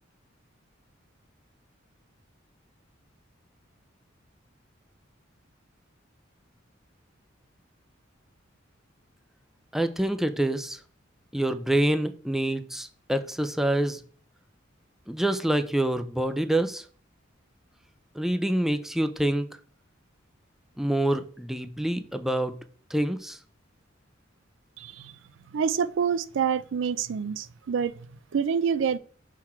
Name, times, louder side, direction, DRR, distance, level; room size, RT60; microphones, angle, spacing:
voice 1, 9.7-10.8 11.3-14.0 15.1-16.8 18.2-19.5 20.8-22.6 22.9-23.4, right 1 dB, ahead, 0.4 m, -26 dB
voice 2, 25.5-27.9 28.3-29.0, right 7 dB, 70° right, 0.4 m, -26 dB
6.0 x 3.9 x 4.3 m
head